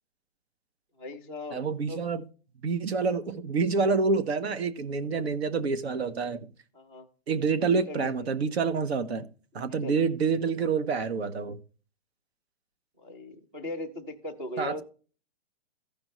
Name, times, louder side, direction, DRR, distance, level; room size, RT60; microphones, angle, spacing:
voice 1, 1.0-1.6 1.9-2.0 6.7-7.1 7.6-8.1 9.6-10.0 13.0-14.8, left 2 dB, 10° right, 0.4 m, -38 dB
voice 2, 1.5-2.2 2.6-6.5 7.3-9.3 9.5-11.6 14.6-14.8, right 4 dB, 70° right, 1.3 m, -27 dB
15.5 x 5.3 x 3.1 m
hypercardioid pair, 170°, 32 cm